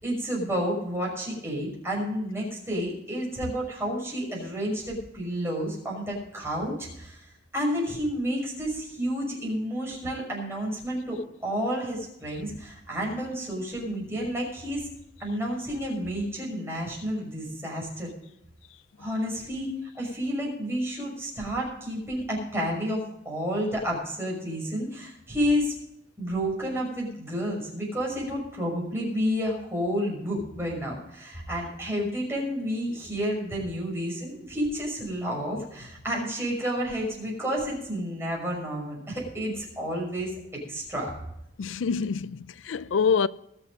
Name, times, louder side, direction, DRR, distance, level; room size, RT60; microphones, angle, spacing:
voice 1, 0.0-7.3 7.5-14.9 15.2-18.1 19.0-25.7 26.2-41.1, equal, 15° right, 5.9 m, -30 dB
voice 2, 41.6-43.3, left 6 dB, 90° left, 0.4 m, -26 dB
20.5 x 6.9 x 5.2 m
head